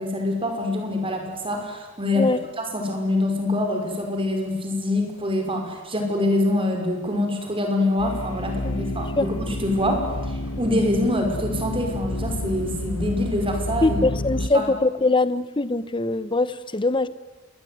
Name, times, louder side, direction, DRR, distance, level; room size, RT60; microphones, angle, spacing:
voice 1, 0.0-2.3 2.6-14.0 14.5-14.6, left 1 dB, 25° right, 3 dB, 5.7 m, -25 dB
sound 1, 8.0-14.5, left 1 dB, 65° left, 1.3 m, -30 dB
voice 2, 13.8-17.1, left 2 dB, 25° left, 15 dB, 1.0 m, -22 dB
27.0 x 22.0 x 9.5 m, 1.1 s
head